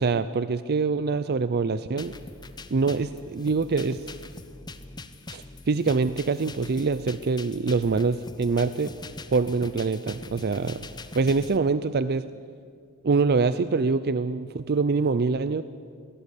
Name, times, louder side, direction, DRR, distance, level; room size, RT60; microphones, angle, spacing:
voice 1, 0.0-2.1 2.7-4.1 5.3-8.9 9.3-10.9 11.1-12.2 13.0-15.6, right 4 dB, 45° right, 13 dB, 0.5 m, -25 dB
sound 1, 2.0-11.6, left 2 dB, 20° left, 0.8 m, -42 dB
22.5 x 17.0 x 8.3 m, 2.2 s
head